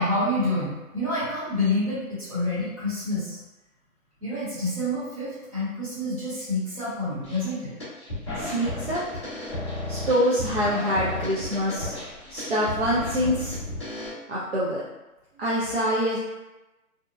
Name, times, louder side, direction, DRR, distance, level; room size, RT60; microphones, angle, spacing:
voice 1, 0.0-3.4 4.2-7.7, left 1 dB, 25° right, -10 dB, 1.0 m, -28 dB
sound 1, 7.2-7.5 7.8-14.1, left 1 dB, 20° left, 0.6 m, -33 dB
voice 2, 8.4-9.2 9.9-11.9 12.3-13.6 14.3-14.8 15.4-16.2, equal, 45° right, -8 dB, 0.6 m, -25 dB
2.8 x 2.1 x 2.3 m, 1.0 s
hypercardioid pair, 170°, 43 cm